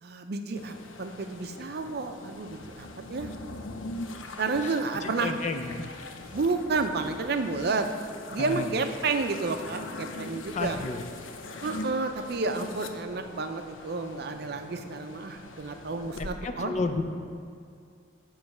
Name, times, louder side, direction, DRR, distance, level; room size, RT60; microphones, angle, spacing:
voice 1, 0.0-3.3 4.4-5.3 6.3-7.9 8.3-10.8 11.6-16.7, right 3 dB, 55° right, 7 dB, 0.5 m, -31 dB
sound 1, 0.6-16.3, left 2 dB, 90° left, 0.5 m, -42 dB
voice 2, 4.6-6.1 8.4-8.7 10.5-11.0 16.4-17.0, left 3 dB, 40° left, 7 dB, 0.4 m, -32 dB
9.3 x 3.1 x 6.4 m, 2.3 s
head